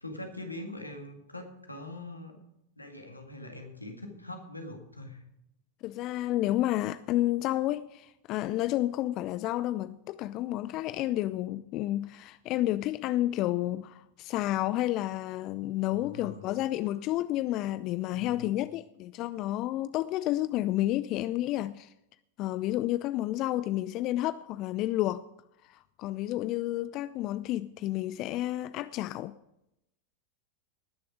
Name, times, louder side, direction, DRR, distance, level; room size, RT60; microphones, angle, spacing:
voice 1, 0.0-2.4 2.8-5.2 15.9-16.5 18.1-18.5, left 2 dB, 85° left, 2.0 m, -43 dB
voice 2, 5.8-21.9 22.4-25.2 25.6-29.3, left 15 dB, 40° left, 0.3 m, -30 dB
19.5 x 6.8 x 4.9 m
figure-of-eight pair, 90°, 0 cm